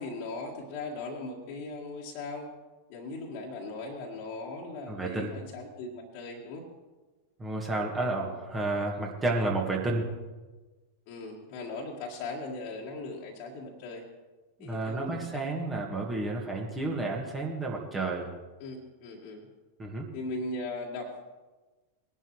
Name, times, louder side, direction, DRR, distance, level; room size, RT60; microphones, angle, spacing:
voice 1, 0.0-2.5 2.9-6.7 11.1-14.0 14.6-15.4 18.6-19.5 20.1-21.2, left 2 dB, 45° left, -3 dB, 1.9 m, -38 dB
voice 2, 4.9-5.3 7.4-10.1 14.6-18.3 19.8-20.1, right 2 dB, 15° right, -1 dB, 1.9 m, -31 dB
21.0 x 11.0 x 3.2 m, 1.3 s
figure-of-eight pair, 90°, 0 cm